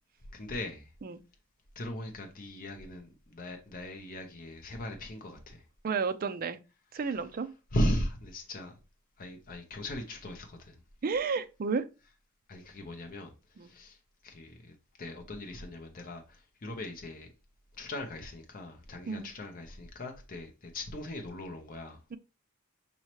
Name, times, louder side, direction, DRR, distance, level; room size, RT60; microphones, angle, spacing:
voice 1, 0.3-0.9 1.8-5.6 7.1-7.2 7.7-8.7 9.2-10.8 12.5-13.3 13.6-14.0 14.2-17.3 17.8-22.0, left 1 dB, 40° left, 0.6 m, -38 dB
voice 2, 5.8-6.6 6.9-7.5 11.0-11.9 13.6-13.7 19.1-19.3 22.1-22.2, right 5 dB, 40° right, 0.4 m, -32 dB
5.4 x 3.0 x 2.9 m
head